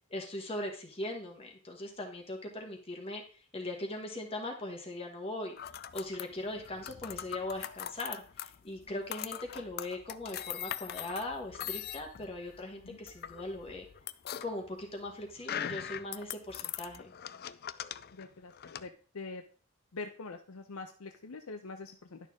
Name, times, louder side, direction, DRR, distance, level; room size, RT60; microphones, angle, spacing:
voice 1, 0.1-3.2 3.5-5.5 5.9-13.8 14.4-17.1, left 1 dB, 25° left, 2 dB, 1.2 m, -40 dB
sound 1, 5.6-18.9, left 10 dB, 45° left, 0.4 m, -41 dB
voice 2, 18.1-19.4 19.9-22.2, left 3 dB, 80° left, 6 dB, 0.7 m, -44 dB
11.0 x 6.6 x 3.6 m, 0.41 s
head